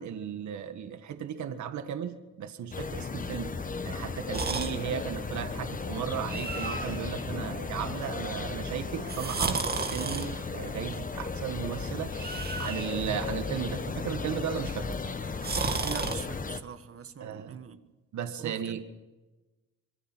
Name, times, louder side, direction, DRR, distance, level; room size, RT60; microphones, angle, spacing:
voice 1, 0.0-3.6 3.8-12.1 12.6-15.0 17.2-17.6 18.1-18.8, right 8 dB, 70° right, 1.7 m, -35 dB
sound 1, 2.7-16.6, left 4 dB, 25° left, 1.2 m, -35 dB
sound 2, 4.3-16.2, right 4 dB, 30° right, 2.0 m, -36 dB
voice 2, 15.8-17.8 18.4-18.8, right 7 dB, 50° right, 1.7 m, -42 dB
25.5 x 22.0 x 6.2 m
cardioid pair, 90°, 30 cm